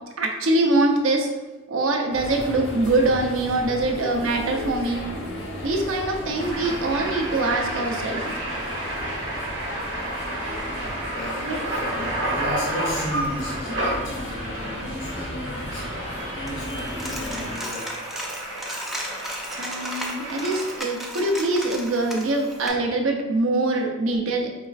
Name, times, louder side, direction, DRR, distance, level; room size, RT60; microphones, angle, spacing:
voice 1, 0.2-1.3 1.7-5.0 5.6-8.4 11.5-11.6 19.6-24.7, right 2 dB, 80° right, 2 dB, 0.6 m, -23 dB
sound 1, 2.1-17.5, left 1 dB, 80° left, 1.0 m, -35 dB
sound 2, 6.4-20.8, right 1 dB, 55° right, 1.0 m, -31 dB
voice 2, 11.0-18.0, equal, 65° left, -5 dB, 0.7 m, -35 dB
Coin (dropping), 16.5-22.7, equal, ahead, 0.3 m, -35 dB
4.9 x 3.2 x 2.4 m, 1.1 s
head